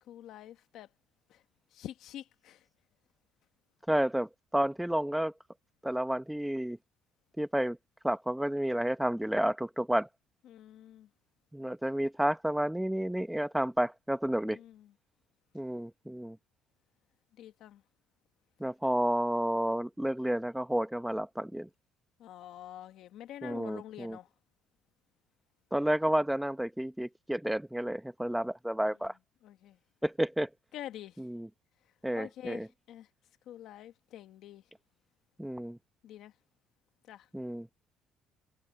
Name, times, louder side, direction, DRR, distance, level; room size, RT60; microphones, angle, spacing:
voice 1, 0.1-0.9 1.3-1.4 1.7-2.6 10.5-11.1 14.4-14.8 17.4-17.8 22.2-24.3 29.4-29.8 30.7-31.2 32.1-33.1 33.5-34.6 36.0-36.3 37.1-37.3, left 12 dB, 60° left, 1.2 m, -46 dB
voice 2, 3.9-5.3 5.8-6.8 7.4-7.8 8.0-10.1 11.5-14.6 15.5-16.4 18.6-21.7 23.4-24.2 25.7-29.1 30.0-30.5 31.2-31.5 32.0-32.7 35.4-35.8 37.3-37.7, right 1 dB, 5° right, 0.8 m, -31 dB
cardioid pair, 140°, 0 cm